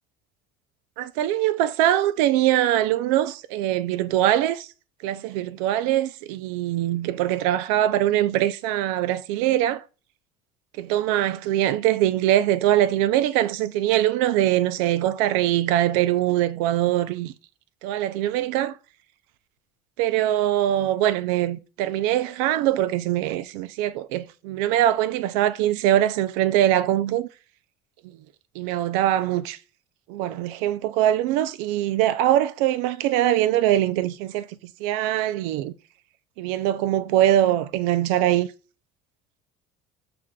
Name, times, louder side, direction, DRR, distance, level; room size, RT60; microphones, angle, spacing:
voice 1, 1.0-4.7 5.0-9.8 10.8-17.3 17.8-18.8 20.0-27.3 28.6-29.6 30.1-34.5 34.8-35.7 36.4-38.5, right 12 dB, 80° right, 0.4 m, -22 dB
7.3 x 2.5 x 2.2 m
supercardioid pair, 105°, 20 cm